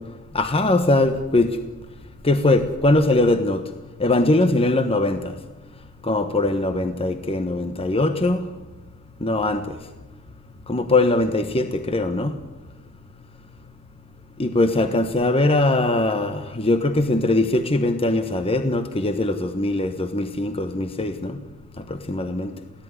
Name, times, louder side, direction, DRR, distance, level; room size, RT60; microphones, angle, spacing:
voice 1, 0.3-1.6 2.2-3.6 4.0-5.2 6.0-8.5 9.2-9.6 10.7-12.4 14.4-21.4 21.9-22.5, left 2 dB, 25° left, 9 dB, 1.1 m, -21 dB
23.5 x 16.5 x 9.8 m, 1.2 s
head